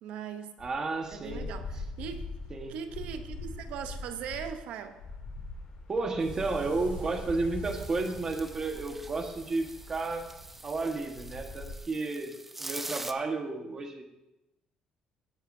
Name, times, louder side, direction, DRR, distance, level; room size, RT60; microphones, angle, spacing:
voice 1, 0.0-0.5 1.1-2.3 2.7-5.0, right 7 dB, 80° right, 9 dB, 0.8 m, -39 dB
sound 1, 0.6-11.8, left 3 dB, 55° left, 2.7 m, -43 dB
voice 2, 0.6-1.5 2.5-2.8 5.9-10.3 10.6-14.0, right 3 dB, 30° right, 4 dB, 1.4 m, -32 dB
sound 2, 6.2-11.5, right 2 dB, 45° right, 3.3 m, -45 dB
sound 3, 7.6-13.1, right 2 dB, 10° right, 0.5 m, -44 dB
17.0 x 8.2 x 2.7 m, 0.96 s
cardioid pair, 130°, 2 cm